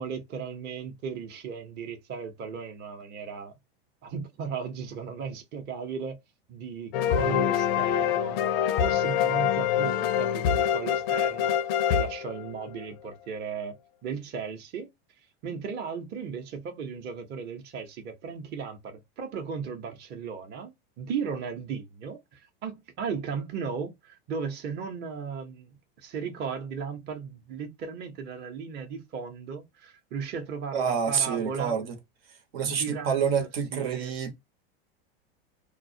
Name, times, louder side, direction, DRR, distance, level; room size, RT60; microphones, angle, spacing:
voice 1, 0.0-3.5 4.0-6.2 6.5-8.4 8.8-11.5 11.9-13.8 14.0-14.9 15.4-25.7 26.0-31.8 32.6-34.2, right 6 dB, 35° right, 0.7 m, -36 dB
sound 1, 6.9-12.8, left 9 dB, 70° left, 0.5 m, -25 dB
voice 2, 30.7-31.9 32.5-34.3, right 7 dB, 75° right, 0.9 m, -27 dB
2.3 x 2.1 x 2.6 m
hypercardioid pair, 115°, 30 cm